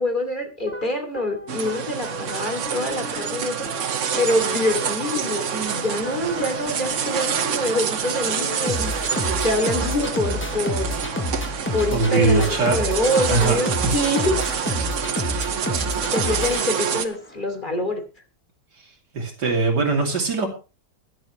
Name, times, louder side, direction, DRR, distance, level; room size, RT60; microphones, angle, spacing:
voice 1, 0.0-3.9 4.2-11.0 11.7-14.3 15.5-18.0, left 1 dB, 30° left, 5 dB, 3.0 m, -26 dB
sound 1, 0.7-17.3, left 1 dB, 10° left, 0.6 m, -31 dB
sound 2, 1.5-17.1, right 8 dB, 55° right, 1.2 m, -27 dB
sound 3, 5.6-17.9, equal, 90° left, 4.4 m, -44 dB
voice 2, 11.9-12.8 13.3-13.9 19.1-20.5, right 3 dB, 80° right, 2 dB, 3.4 m, -21 dB
23.0 x 7.9 x 3.2 m, 0.31 s
omnidirectional pair, 1.8 m